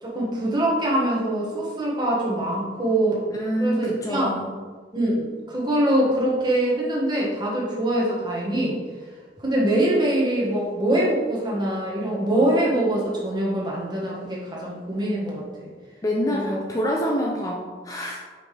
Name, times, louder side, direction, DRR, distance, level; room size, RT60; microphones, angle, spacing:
voice 1, 0.0-3.2 3.6-4.3 4.9-8.8 9.4-15.7 16.3-16.6, right 1 dB, 25° right, -5 dB, 1.5 m, -23 dB
voice 2, 3.3-4.5 16.0-18.2, equal, 20° left, -2 dB, 0.5 m, -26 dB
5.7 x 5.0 x 3.4 m, 1.4 s
head